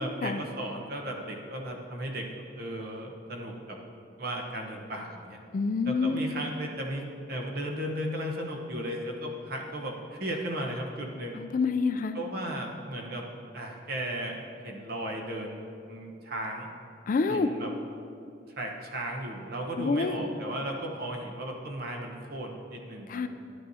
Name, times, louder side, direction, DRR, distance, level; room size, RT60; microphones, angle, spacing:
voice 1, 0.0-2.3 2.5-3.8 4.2-5.4 5.8-11.4 12.1-13.2 13.5-14.4 14.6-16.7 17.3-17.7 18.6-23.3, right 1 dB, 50° right, 1 dB, 1.0 m, -35 dB
voice 2, 5.5-6.2 11.4-12.2 17.1-17.5 19.8-20.2 23.1-23.3, left 4 dB, 45° left, 10 dB, 0.3 m, -27 dB
11.0 x 9.2 x 2.8 m, 2.5 s
head